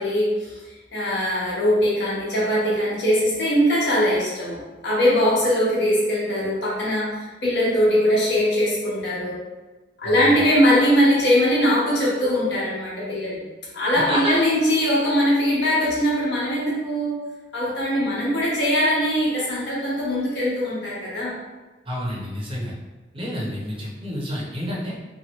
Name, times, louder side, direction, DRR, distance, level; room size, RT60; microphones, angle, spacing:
voice 1, 0.0-9.4 10.0-13.4 13.7-17.2 17.5-21.4, equal, 60° left, -7 dB, 1.0 m, -21 dB
voice 2, 10.0-10.4 14.1-14.3 21.9-22.7 23.1-24.9, equal, 30° right, -5 dB, 0.7 m, -29 dB
3.0 x 2.4 x 2.9 m, 1.2 s
head